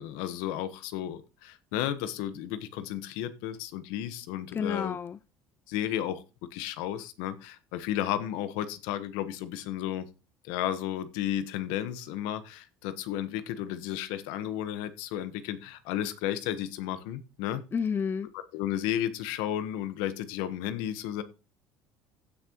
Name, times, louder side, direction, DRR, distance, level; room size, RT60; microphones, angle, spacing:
voice 1, 0.0-5.0 5.7-6.2 6.5-10.1 10.4-17.6 18.5-21.2, left 11 dB, 80° left, 1.2 m, -33 dB
voice 2, 4.5-5.2 17.7-18.3, left 6 dB, 30° left, 0.5 m, -30 dB
15.5 x 6.4 x 3.0 m
supercardioid pair, 90°, 8 cm